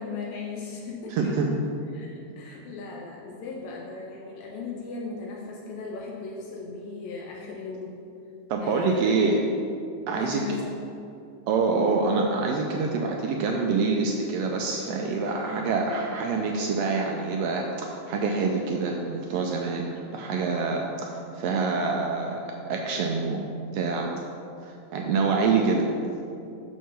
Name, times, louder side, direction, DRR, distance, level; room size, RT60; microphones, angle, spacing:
voice 1, 0.0-1.6 1.9-8.0 8.6-9.2 10.2-10.7, left 4 dB, 80° left, -2 dB, 2.1 m, -37 dB
voice 2, 1.2-1.5 8.5-9.4 10.1-10.6 11.5-23.5 23.7-24.1 24.6-25.9, right 4 dB, 80° right, 1 dB, 1.5 m, -26 dB
6.7 x 4.5 x 6.2 m, 2.6 s
omnidirectional pair, 3.3 m